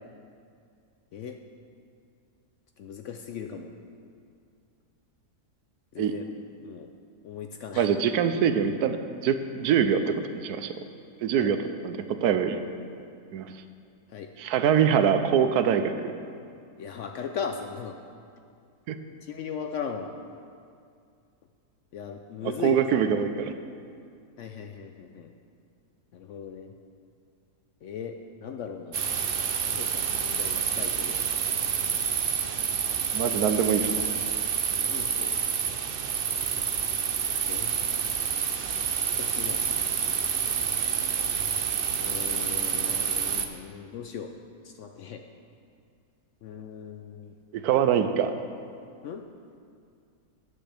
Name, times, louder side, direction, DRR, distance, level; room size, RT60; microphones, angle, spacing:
voice 1, 2.8-3.7 5.9-6.2 6.6-6.9 7.2-7.9 11.4-11.5 14.1-14.3 16.8-18.0 19.2-20.1 21.9-22.8 24.4-25.3 26.1-26.7 27.8-29.2 29.6-31.2 34.8-35.3 37.5-37.7 39.0-39.6 42.0-44.3 44.6-45.2 46.4-47.3 49.0-49.3, left 7 dB, 70° left, 5 dB, 0.7 m, -38 dB
voice 2, 7.8-9.0 9.2-10.7 11.2-11.6 11.8-12.6 13.3-13.5 14.4-16.1 18.9-19.0 22.6-23.5 33.1-34.0 47.5-48.3, right 8 dB, 80° right, 9 dB, 1.1 m, -24 dB
sound 1, 28.9-43.5, right 7 dB, 60° right, 0.5 m, -28 dB
13.5 x 9.7 x 3.4 m, 2.3 s
omnidirectional pair, 1.7 m